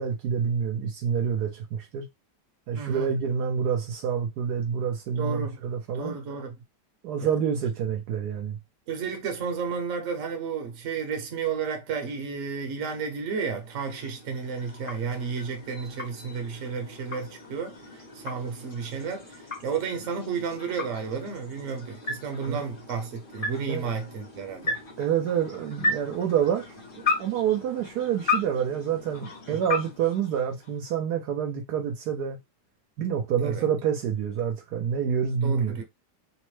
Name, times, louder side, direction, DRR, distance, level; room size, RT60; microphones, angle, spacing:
voice 1, 0.0-2.1 2.7-6.2 7.0-8.6 22.5-22.6 23.7-23.9 25.0-26.7 27.2-32.4 33.0-35.8, right 8 dB, 75° right, 1.1 m, -27 dB
voice 2, 2.7-3.1 5.2-5.6 5.9-6.5 7.2-7.3 8.9-24.8 29.5-29.6 33.4-33.6 35.4-35.8, right 5 dB, 55° right, 1.0 m, -32 dB
sound 1, 13.2-31.0, left 3 dB, 40° left, 0.8 m, -35 dB
3.2 x 2.1 x 3.1 m
omnidirectional pair, 1.9 m